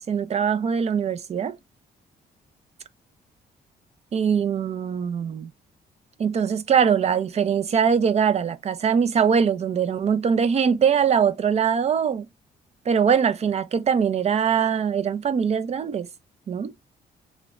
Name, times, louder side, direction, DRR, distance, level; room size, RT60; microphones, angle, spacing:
voice 1, 0.1-1.6 4.1-5.5 6.2-12.3 12.9-16.1 16.5-16.7, right 7 dB, 40° right, 0.5 m, -22 dB
3.0 x 2.5 x 3.0 m
cardioid pair, 95°, 17 cm